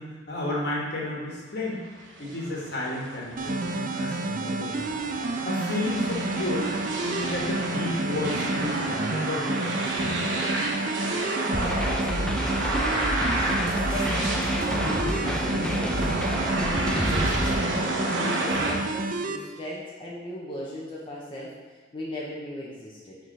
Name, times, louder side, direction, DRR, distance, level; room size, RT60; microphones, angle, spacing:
voice 1, 0.0-1.8 2.2-4.8 5.4-6.7 7.0-10.1, left 1 dB, 60° left, -4 dB, 1.6 m, -32 dB
sound 1, 1.9-18.7, right 2 dB, 70° right, 1.1 m, -31 dB
sound 2, 3.4-19.4, right 3 dB, 45° right, 0.4 m, -30 dB
voice 2, 11.1-13.2 13.8-23.2, equal, 25° left, -6 dB, 0.9 m, -38 dB
sound 3, 11.5-17.5, equal, 5° left, 0.5 m, -29 dB
6.2 x 3.7 x 5.5 m, 1.3 s
head